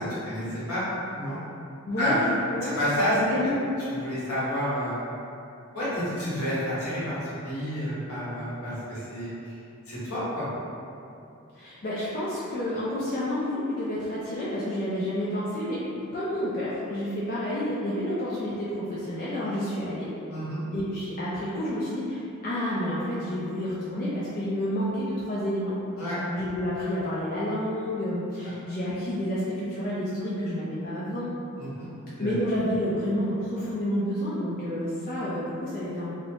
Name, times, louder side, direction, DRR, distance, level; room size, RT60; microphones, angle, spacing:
voice 1, 0.2-0.8 1.1-1.4 2.0-2.1 2.6-3.2 3.9-5.0 5.7-9.3 9.9-10.4 20.3-20.6 26.0-26.2 31.6-32.3, equal, 85° left, -11 dB, 1.1 m, -30 dB
voice 2, 1.8-2.8 3.2-3.6 11.6-20.1 20.7-25.8 26.0-31.3 32.2-36.1, left 1 dB, 40° left, -9 dB, 0.4 m, -29 dB
2.8 x 2.0 x 2.7 m, 2.7 s
head